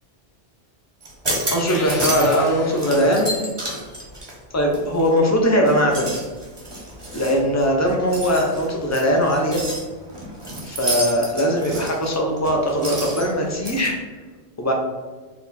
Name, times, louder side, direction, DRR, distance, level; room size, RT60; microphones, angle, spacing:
sound 1, 1.0-2.5 2.8-5.2 5.6-13.9, right 1 dB, 25° right, 0.8 m, -30 dB
voice 1, 1.4-3.3 4.5-6.1 7.1-9.6 10.7-14.0 14.6-14.7, equal, 20° left, 0 dB, 0.5 m, -20 dB
sound 2, 1.7-3.6, left 2 dB, 55° left, 1.2 m, -35 dB
4.3 x 2.4 x 4.0 m, 1.4 s
omnidirectional pair, 1.1 m